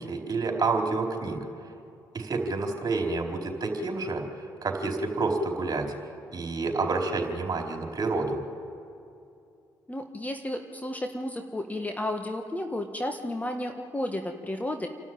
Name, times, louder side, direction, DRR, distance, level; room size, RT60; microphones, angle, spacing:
voice 1, 0.0-1.4 2.1-4.2 4.6-5.9 6.3-8.4, right 3 dB, 35° right, 1 dB, 4.4 m, -28 dB
voice 2, 9.9-14.9, left 1 dB, 15° left, 5 dB, 1.7 m, -32 dB
28.0 x 12.5 x 9.1 m, 2.6 s
figure-of-eight pair, 45°, 11 cm